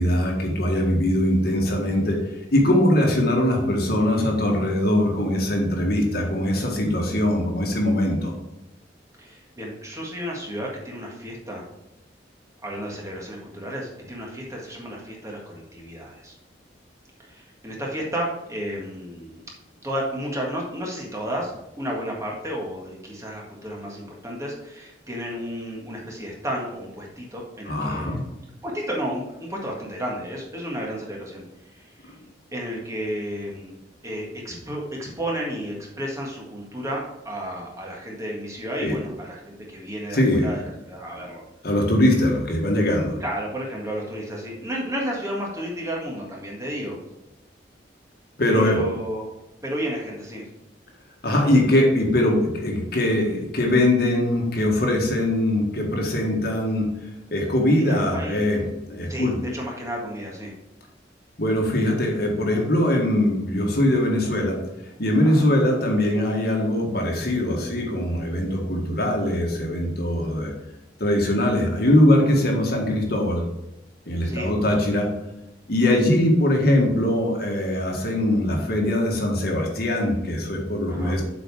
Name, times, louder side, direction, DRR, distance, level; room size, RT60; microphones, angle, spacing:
voice 1, 0.0-2.2 2.5-8.3 27.7-28.2 38.8-39.0 40.1-40.5 41.1-41.2 41.6-43.2 48.4-48.8 51.2-56.9 57.3-58.6 58.9-59.4 61.4-64.6 65.0-70.5 71.0-73.4 74.1-75.1 75.7-81.2, left 1 dB, 60° left, 0 dB, 1.7 m, -21 dB
voice 2, 9.2-11.6 12.6-16.4 17.2-19.4 19.8-28.2 28.6-31.5 31.7-32.1 32.5-33.8 34.0-41.4 43.2-47.0 48.5-49.3 49.6-50.4 57.7-58.5 59.1-60.5 65.2-65.5 74.2-74.5 80.9-81.2, equal, 15° right, -2 dB, 1.7 m, -32 dB
7.5 x 5.1 x 4.8 m, 0.92 s
head